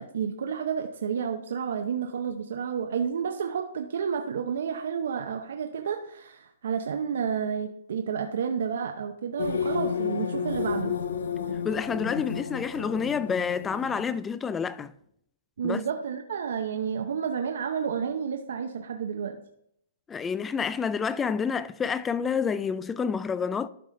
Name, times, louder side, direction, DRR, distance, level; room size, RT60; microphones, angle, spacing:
voice 1, 0.0-10.9 15.6-19.4, right 7 dB, 70° right, 0.7 m, -30 dB
sound 1, 9.4-14.3, left 7 dB, 80° left, 0.7 m, -31 dB
voice 2, 11.6-14.9 15.6-15.8 20.1-23.7, left 6 dB, 10° left, 0.3 m, -28 dB
12.0 x 4.9 x 3.8 m
hypercardioid pair, 155°, 0 cm